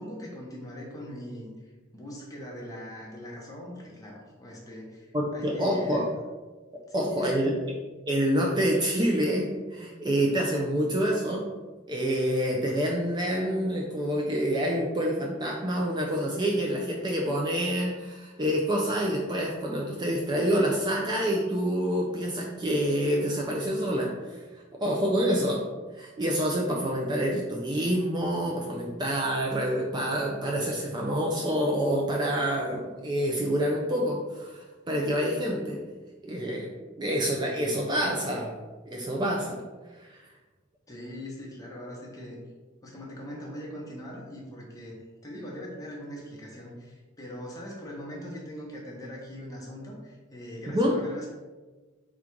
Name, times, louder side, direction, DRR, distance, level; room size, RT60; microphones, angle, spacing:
voice 1, 0.0-6.1 6.9-7.5 40.9-42.4 42.8-45.0 45.2-51.3, equal, 20° left, -3 dB, 0.9 m, -41 dB
voice 2, 5.1-6.1 6.9-7.5 8.1-11.4 11.9-24.4 24.8-25.6 25.9-35.8 36.2-36.7 37.0-38.5 38.9-39.6 39.9-40.2 50.7-51.0, equal, 20° right, -1 dB, 0.4 m, -27 dB
3.8 x 2.4 x 4.4 m, 1.3 s
head